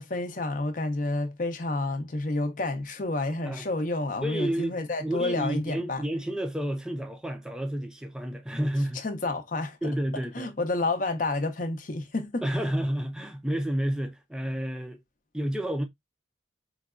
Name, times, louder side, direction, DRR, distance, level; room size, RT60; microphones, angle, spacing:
voice 1, 0.0-6.1 8.9-9.8 10.3-12.4, left 2 dB, 45° left, 0.6 m, -29 dB
voice 2, 4.2-9.0 9.8-10.5 12.4-15.0 15.3-15.8, right 1 dB, 5° right, 0.4 m, -30 dB
3.8 x 2.3 x 2.3 m
head